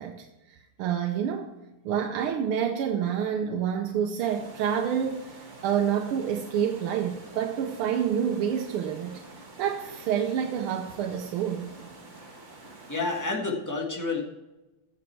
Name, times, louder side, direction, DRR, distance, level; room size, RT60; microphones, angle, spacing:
voice 1, 0.0-1.5 1.9-9.2 9.6-11.7, right 8 dB, 85° right, 1.7 m, -28 dB
sound 1, 4.2-13.3, right 2 dB, 35° right, 2.0 m, -47 dB
voice 2, 12.9-14.2, left 3 dB, 10° left, 1.5 m, -29 dB
15.0 x 6.5 x 4.6 m
omnidirectional pair, 2.4 m